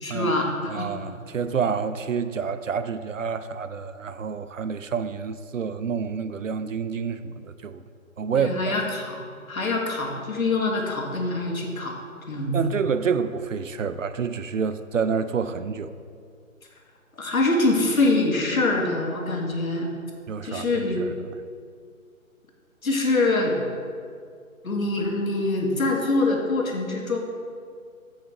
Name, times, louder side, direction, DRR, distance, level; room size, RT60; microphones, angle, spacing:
voice 1, 0.0-0.9 8.3-12.0 12.3-12.6 17.2-19.9 20.4-21.0 22.8-23.6 24.6-27.2, left 2 dB, 75° left, 0 dB, 1.8 m, -24 dB
voice 2, 0.7-7.8 8.2-8.7 12.5-15.9 20.3-21.1, right 6 dB, 65° right, 12 dB, 0.5 m, -28 dB
8.7 x 7.3 x 3.3 m, 2.2 s
figure-of-eight pair, 150°, 42 cm